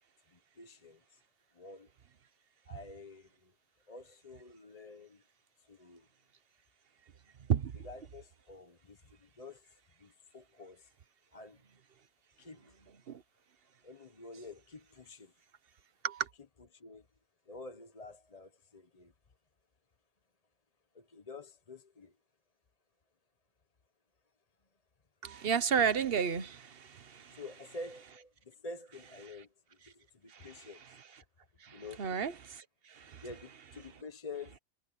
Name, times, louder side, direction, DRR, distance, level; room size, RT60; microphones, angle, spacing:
voice 1, 0.3-1.2 1.5-1.9 2.7-3.5 3.9-5.2 5.6-6.1 7.8-10.9 11.3-11.6 12.4-12.8 13.8-15.3 16.7-17.1 17.5-19.1 20.9-22.1 27.3-29.5 29.9-30.8 31.7-32.2 33.2-34.6, left 3 dB, 30° left, 1.1 m, -49 dB
voice 2, 25.2-27.4 30.3-30.7 31.6-33.2, right 7 dB, 45° right, 1.1 m, -33 dB
omnidirectional pair, 1.4 m